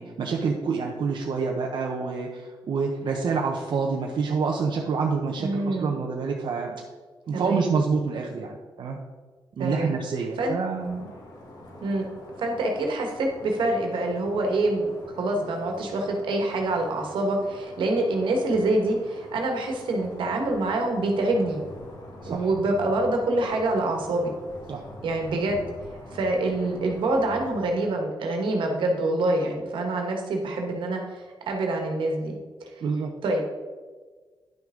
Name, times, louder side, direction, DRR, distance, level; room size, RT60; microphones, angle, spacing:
voice 1, 0.0-6.8 7.3-9.0 9.6-11.1 22.2-22.5 24.7-24.8 32.8-33.1, right 5 dB, 70° right, 0 dB, 0.8 m, -27 dB
voice 2, 5.4-5.9 7.3-7.7 9.6-9.9 10.4-10.5 11.8-12.0 12.4-14.9 15.1-21.6 22.3-24.3 25.0-25.6 26.1-32.3 32.6-32.7 33.2-33.4, right 2 dB, 85° right, 2 dB, 1.6 m, -26 dB
sound 1, 10.8-27.7, left 1 dB, 55° left, 2.4 m, -45 dB
10.0 x 6.0 x 3.8 m, 1.4 s
cardioid pair, 80°, 8 cm